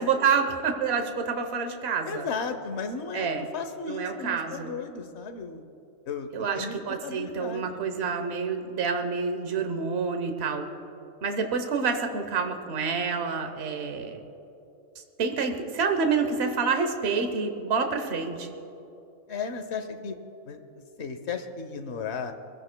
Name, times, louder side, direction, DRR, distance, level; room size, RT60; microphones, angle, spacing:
voice 1, 0.0-2.3 3.1-3.5 3.9-4.7 6.3-10.7 11.2-14.2 15.2-18.5, right 5 dB, 50° right, 5 dB, 1.2 m, -28 dB
voice 2, 2.0-5.6 6.0-6.8 7.0-7.8 19.3-20.2 20.5-22.3, left 5 dB, 55° left, 7 dB, 1.2 m, -35 dB
22.0 x 15.5 x 2.2 m, 2.8 s
omnidirectional pair, 1.4 m